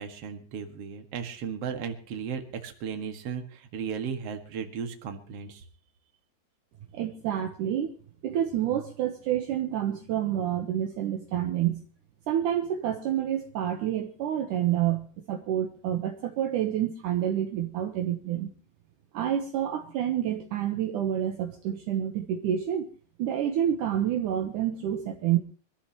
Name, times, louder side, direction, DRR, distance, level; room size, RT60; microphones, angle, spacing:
voice 1, 0.0-5.6, right 7 dB, 50° right, 6 dB, 2.1 m, -35 dB
voice 2, 6.9-7.9 8.2-11.8 12.3-18.5 19.1-22.9 23.2-25.4, right 10 dB, 75° right, 5 dB, 1.9 m, -28 dB
25.0 x 14.0 x 3.0 m, 0.43 s
omnidirectional pair, 5.1 m